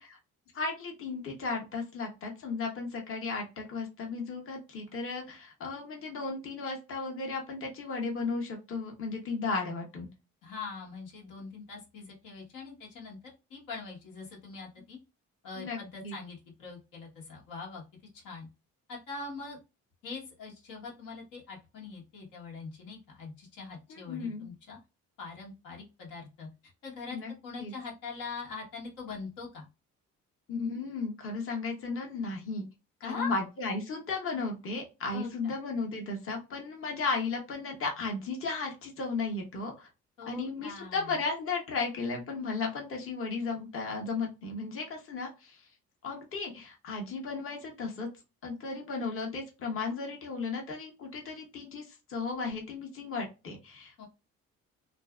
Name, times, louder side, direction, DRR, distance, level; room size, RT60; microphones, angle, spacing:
voice 1, 0.5-10.1 15.6-16.1 23.9-24.5 27.1-27.3 27.6-27.7 30.5-32.7 33.0-39.9 40.3-45.6 46.0-48.1 48.4-54.1, left 4 dB, 45° left, 1 dB, 0.9 m, -35 dB
voice 2, 10.4-13.2 13.5-15.0 15.4-17.8 18.1-18.5 18.9-19.6 20.0-24.8 25.2-27.2 27.4-29.7 33.0-33.3 35.1-35.5 40.2-41.1 54.0-54.1, left 4 dB, 90° left, -2 dB, 1.2 m, -42 dB
2.6 x 2.4 x 2.3 m, 0.27 s
cardioid pair, 90°, 30 cm